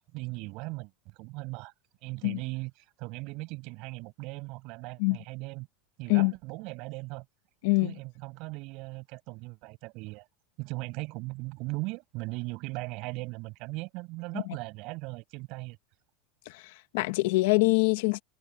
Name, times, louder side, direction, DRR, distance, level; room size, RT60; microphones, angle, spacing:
voice 1, 0.1-1.7 2.0-2.7 3.0-5.7 6.0-7.2 7.8-10.3 10.6-15.8, right 25 dB, 50° right, 6.7 m, -38 dB
voice 2, 16.4-18.2, left 25 dB, 65° left, 1.4 m, -24 dB
supercardioid pair, 155°, 0 cm